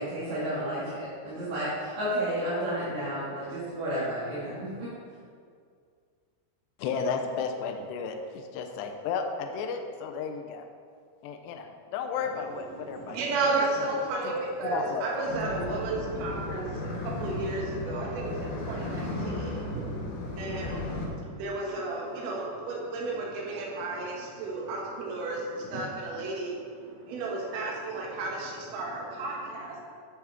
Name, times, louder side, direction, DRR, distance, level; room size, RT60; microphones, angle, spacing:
voice 1, 0.0-4.9, right 1 dB, 50° right, -12 dB, 2.7 m, -32 dB
voice 2, 6.8-10.6 11.2-13.2 13.8-13.9 14.2-14.3 14.6-15.1, left 5 dB, 85° left, 4 dB, 2.4 m, -33 dB
voice 3, 12.8-29.8, right 2 dB, 85° right, -2 dB, 1.9 m, -33 dB
sound 1, 15.3-21.1, left 2 dB, 70° left, 3.7 m, -35 dB
10.5 x 7.9 x 3.6 m, 2.2 s
omnidirectional pair, 5.7 m